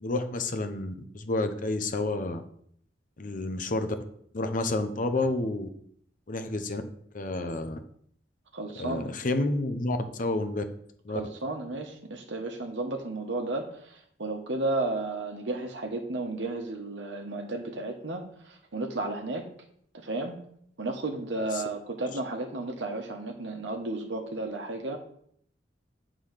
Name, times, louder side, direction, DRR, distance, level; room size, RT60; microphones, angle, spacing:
voice 1, 0.0-2.4 3.2-4.0 4.3-5.7 6.3-6.8 7.1-7.8 8.8-10.6 11.0-11.2 21.5-21.6, left 2 dB, 45° left, 8 dB, 0.8 m, -30 dB
voice 2, 8.5-9.1 11.1-19.5 19.9-20.4 20.8-25.0, right 2 dB, 75° right, 2 dB, 1.1 m, -33 dB
8.6 x 3.9 x 6.4 m, 0.65 s
head